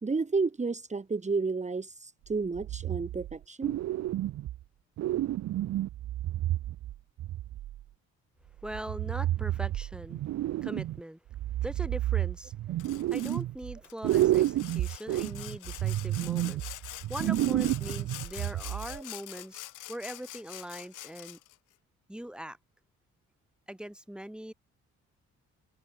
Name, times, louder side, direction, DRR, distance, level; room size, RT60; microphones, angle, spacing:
voice 1, 0.0-3.8 18.9-19.0, right 4 dB, 25° right, 2.0 m, -31 dB
sound 1, 2.5-3.4 3.6-4.6 5.0-7.8 8.6-11.0 11.3-13.8 14.0-19.0, right 14 dB, 60° right, 0.6 m, -30 dB
voice 2, 8.6-10.2 10.6-11.2 11.6-12.5 12.8-21.4 22.1-22.6 23.7-24.5, right 1 dB, 5° right, 3.4 m, -41 dB
Sawing, 12.8-13.4 13.8-21.6, left 16 dB, 85° left, 2.2 m, -45 dB
cardioid pair, 90°, 30 cm